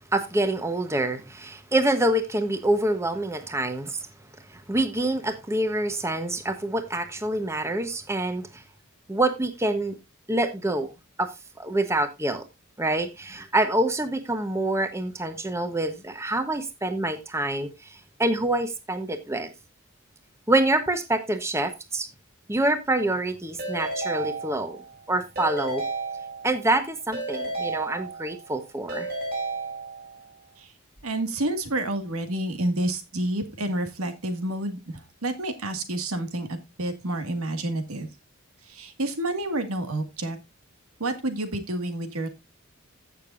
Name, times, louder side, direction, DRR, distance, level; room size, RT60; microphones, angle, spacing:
voice 1, 0.1-4.0 4.5-8.6 9.1-10.0 10.3-10.9 11.2-11.3 11.6-12.4 12.8-19.5 20.5-22.1 22.5-24.8 25.1-25.8 26.4-29.1, right 1 dB, 15° right, 1.0 m, -26 dB
Keyboard (musical) / Ringtone, 23.6-24.9 25.4-26.7 27.1-28.5 28.9-30.2, right 3 dB, 45° right, 6.4 m, -32 dB
voice 2, 31.0-38.1 38.7-40.4 41.0-42.3, right 1 dB, 85° right, 1.9 m, -29 dB
15.5 x 6.8 x 2.6 m
head